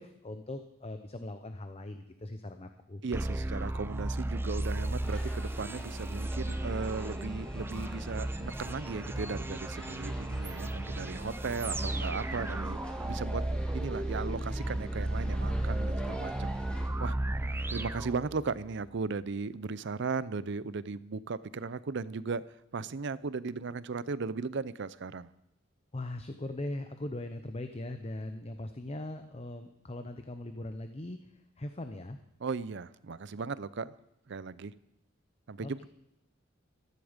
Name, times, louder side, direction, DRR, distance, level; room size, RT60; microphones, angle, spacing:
voice 1, 0.0-3.0 25.9-31.2 31.6-32.2 35.6-35.9, left 1 dB, 30° left, 8 dB, 0.8 m, -40 dB
voice 2, 3.0-13.4 13.7-16.6 17.0-17.2 17.7-22.4 22.7-25.3 32.4-33.9 34.3-34.7 35.5-35.9, right 4 dB, 60° right, 17 dB, 0.6 m, -36 dB
sound 1, 3.1-18.7, right 1 dB, 10° right, 0.5 m, -34 dB
sound 2, 5.0-16.9, equal, 5° left, 2.2 m, -48 dB
15.0 x 14.0 x 5.2 m, 0.84 s
head